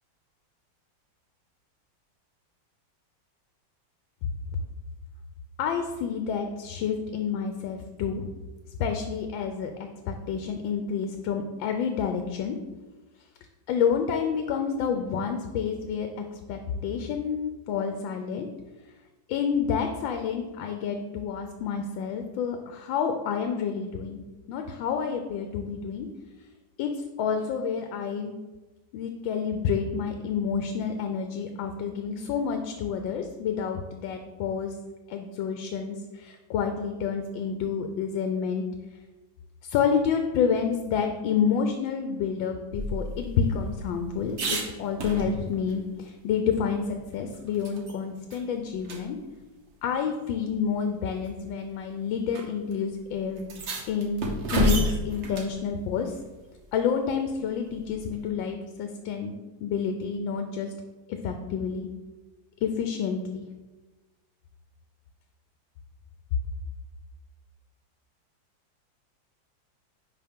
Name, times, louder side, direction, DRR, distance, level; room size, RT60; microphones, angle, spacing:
voice 1, 5.6-8.2 8.8-9.7 10.1-12.6 13.7-18.5 19.3-24.2 24.5-26.1 26.8-28.3 28.9-34.7 35.1-38.6 39.6-49.2 49.8-53.5 53.9-56.2 56.7-59.3 59.6-60.7 61.1-61.9 62.6-63.4, left 6 dB, 85° left, 5 dB, 1.4 m, -29 dB
sound 1, 42.7-45.7 46.1-46.2 46.5-48.0 48.3-48.4 48.8-49.0 50.0-50.1 51.0-51.3 52.3-52.4 52.7-52.8 53.4-55.6 57.8-58.3, right 1 dB, 45° right, 1.0 m, -31 dB
10.0 x 4.2 x 3.6 m, 1.2 s
omnidirectional pair, 2.0 m